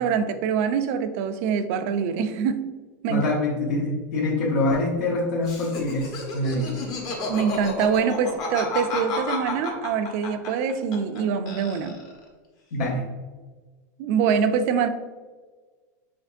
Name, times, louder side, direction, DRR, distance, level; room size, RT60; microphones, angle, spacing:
voice 1, 0.0-2.6 3.0-3.3 7.3-12.0 14.0-14.9, right 6 dB, 55° right, 10 dB, 0.4 m, -24 dB
voice 2, 3.1-6.8 12.7-13.0, left 2 dB, 70° left, -5 dB, 1.0 m, -25 dB
Laughter, 5.4-11.2 11.5-12.2, left 3 dB, 40° left, 1.1 m, -31 dB
5.1 x 3.5 x 2.6 m, 1.4 s
hypercardioid pair, 125°, 10 cm